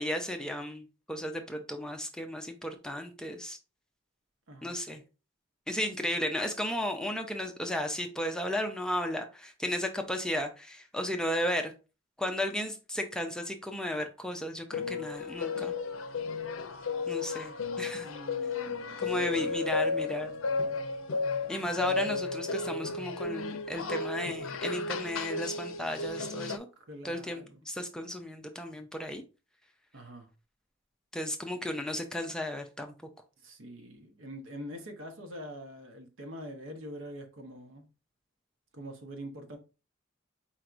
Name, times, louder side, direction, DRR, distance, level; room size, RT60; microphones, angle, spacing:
voice 1, 0.0-3.6 4.6-5.0 5.7-11.7 12.2-15.7 17.1-18.1 19.0-20.3 21.5-26.7 27.0-29.2 31.1-32.9, left 1 dB, 5° left, 0.5 m, -34 dB
voice 2, 4.5-4.8 18.0-20.4 26.8-27.6 29.9-30.3 33.4-37.9 38.7-39.6, equal, 70° right, 1.0 m, -45 dB
sound 1, 14.7-26.6, left 4 dB, 85° left, 0.5 m, -34 dB
4.5 x 4.4 x 2.5 m
head